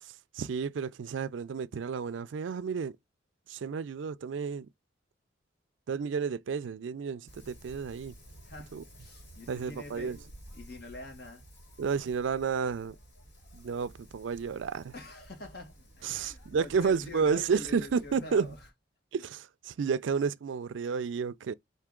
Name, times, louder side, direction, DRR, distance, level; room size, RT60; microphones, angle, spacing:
voice 1, 0.0-3.0 3.5-4.7 5.9-8.1 8.7-8.8 9.5-10.2 11.8-13.0 13.5-14.9 16.0-18.5 19.1-21.5, right 6 dB, 75° right, 0.4 m, -31 dB
Wind, 7.3-18.7, equal, 70° left, 1.9 m, -53 dB
voice 2, 8.4-10.2 10.5-11.4 14.9-18.6, left 2 dB, 55° left, 1.5 m, -45 dB
4.7 x 2.7 x 3.6 m
head